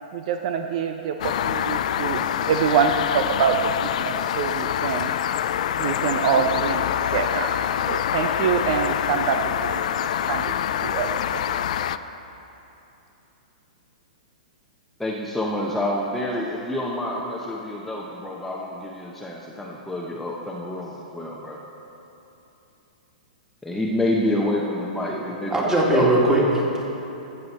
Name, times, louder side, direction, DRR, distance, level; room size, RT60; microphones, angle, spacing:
voice 1, 0.1-5.1 5.8-6.8 7.1-7.6 7.9-9.8 10.3-10.5 10.8-11.4, right 6 dB, 50° right, 6 dB, 0.5 m, -25 dB
sound 1, 1.2-12.0, left 10 dB, 60° left, 0.3 m, -25 dB
voice 2, 15.0-21.6 23.6-26.2, left 1 dB, 5° left, -3 dB, 0.8 m, -28 dB
voice 3, 25.5-26.8, right 1 dB, 10° right, -3 dB, 2.2 m, -19 dB
14.0 x 7.7 x 4.2 m, 3.0 s
hypercardioid pair, 115°, 4 cm